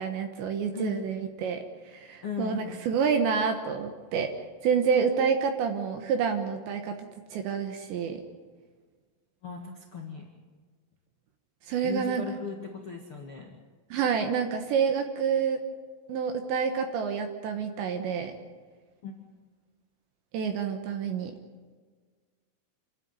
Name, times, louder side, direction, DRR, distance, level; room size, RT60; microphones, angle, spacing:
voice 1, 0.0-4.3 4.6-7.0 7.3-8.2 11.7-12.2 13.9-15.6 16.1-18.3 20.3-21.3, right 6 dB, 70° right, 5 dB, 3.2 m, -28 dB
voice 2, 0.7-1.0 2.2-2.8 9.4-10.3 11.8-13.6 19.0-19.1, left 5 dB, 85° left, 0 dB, 1.2 m, -37 dB
28.5 x 12.5 x 9.6 m, 1.5 s
omnidirectional pair, 5.9 m